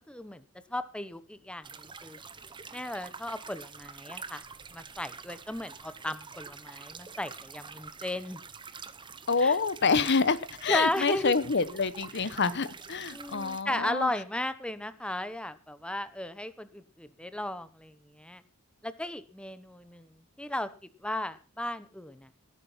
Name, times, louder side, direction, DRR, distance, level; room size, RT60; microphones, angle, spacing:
voice 1, 0.1-0.4 0.7-2.2 2.7-4.4 4.7-8.4 9.4-9.5 10.7-11.4 13.1-18.4 18.8-20.7 21.0-22.3, left 1 dB, 5° left, 13 dB, 1.0 m, -35 dB
sound 1, 1.6-13.6, right 5 dB, 20° right, 0.9 m, -46 dB
voice 2, 9.3-14.1, left 4 dB, 55° left, 16 dB, 1.0 m, -27 dB
18.5 x 8.8 x 5.7 m, 0.36 s
head